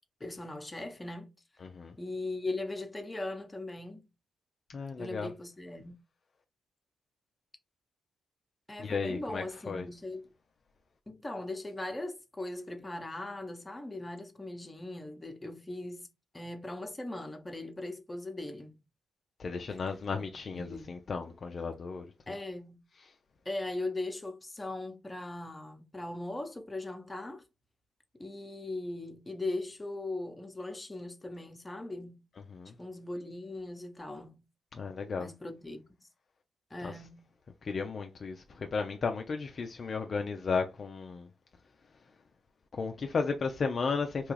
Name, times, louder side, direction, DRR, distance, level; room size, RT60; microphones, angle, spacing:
voice 1, 0.2-1.3 2.0-4.1 5.0-6.0 8.7-10.3 11.1-16.1 16.3-18.8 20.2-20.3 20.5-21.0 21.3-21.4 22.3-22.8 23.4-27.4 28.2-32.3 32.8-34.4 35.2-35.8 36.7-37.3, left 2 dB, 20° left, 0.8 m, -39 dB
voice 2, 1.6-1.9 4.7-5.3 8.8-9.9 19.4-22.0 32.5-32.7 34.7-35.3 36.8-36.9 37.6-41.3 42.7-44.3, left 5 dB, 50° left, 0.4 m, -34 dB
3.0 x 2.3 x 3.1 m
hypercardioid pair, 40°, 0 cm